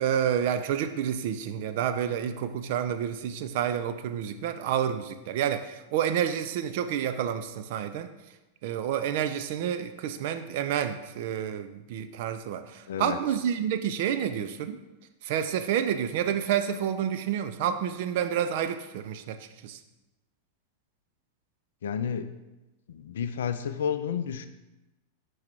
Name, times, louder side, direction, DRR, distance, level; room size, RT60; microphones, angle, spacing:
voice 1, 0.0-8.1 8.6-14.8 15.2-19.8, right 9 dB, 50° right, 10 dB, 0.4 m, -29 dB
voice 2, 12.9-13.2 21.8-22.3 22.9-24.5, left 8 dB, 60° left, 10 dB, 0.4 m, -31 dB
4.7 x 4.6 x 4.4 m, 1.0 s
figure-of-eight pair, 90°, 0 cm